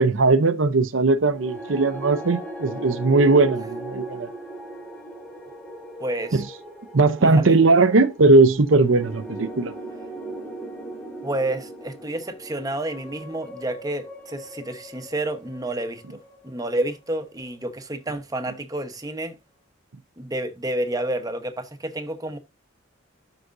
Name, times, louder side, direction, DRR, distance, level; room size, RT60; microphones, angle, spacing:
voice 1, 0.0-4.3 6.3-6.4 6.9-9.7, right 3 dB, 75° right, 0.7 m, -18 dB
sound 1, 1.3-17.6, right 2 dB, 5° left, 2.9 m, -38 dB
voice 2, 6.0-6.4 7.2-7.6 11.2-19.4 20.2-22.4, right 1 dB, 20° right, 1.0 m, -30 dB
12.5 x 5.0 x 2.6 m
head